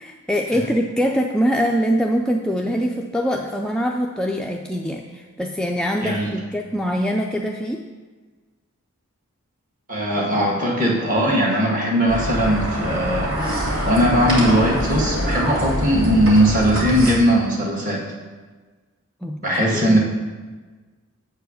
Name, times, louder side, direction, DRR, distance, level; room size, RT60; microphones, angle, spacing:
voice 1, 0.0-7.8 19.2-20.0, equal, 5° left, 0 dB, 0.3 m, -23 dB
voice 2, 9.9-18.0 19.4-20.0, equal, 40° right, -1 dB, 1.7 m, -19 dB
sound 1, 12.1-17.1, equal, 85° right, 2.6 m, -24 dB
8.0 x 4.6 x 6.4 m, 1.4 s
head